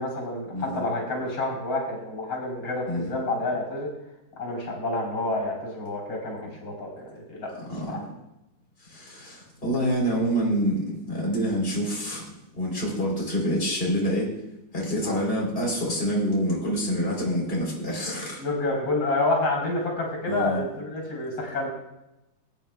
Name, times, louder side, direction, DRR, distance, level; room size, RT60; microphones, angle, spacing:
voice 1, 0.0-3.9 4.4-7.5 7.9-8.0 15.0-15.2 18.4-21.7, left 2 dB, 80° left, -1 dB, 4.7 m, -29 dB
voice 2, 8.8-14.3 14.7-18.4 20.3-20.6, equal, 30° left, -3 dB, 3.9 m, -27 dB
22.0 x 9.7 x 2.3 m, 0.91 s
omnidirectional pair, 2.0 m